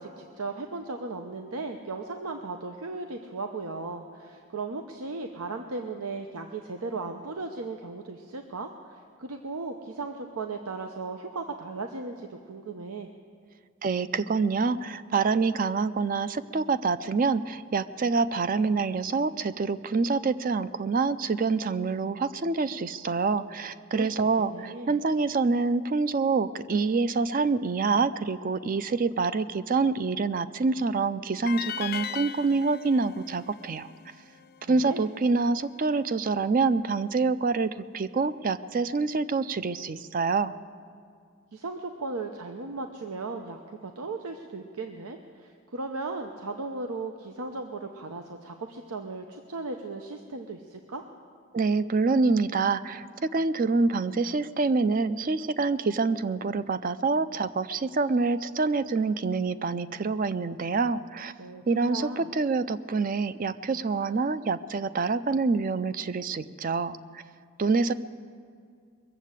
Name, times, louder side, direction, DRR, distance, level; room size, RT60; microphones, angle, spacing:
voice 1, 0.0-13.1 23.9-24.1 24.4-25.0 34.6-35.0 41.5-51.0 61.4-61.6 61.9-62.3, right 3 dB, 90° right, 5 dB, 0.8 m, -36 dB
voice 2, 13.8-33.9 34.7-40.5 51.5-61.3 61.7-67.2 67.6-67.9, right 4 dB, 40° right, 14 dB, 0.4 m, -26 dB
sound 1, 31.5-34.6, left 9 dB, 45° left, 0.3 m, -38 dB
21.5 x 7.4 x 8.1 m, 2.2 s
head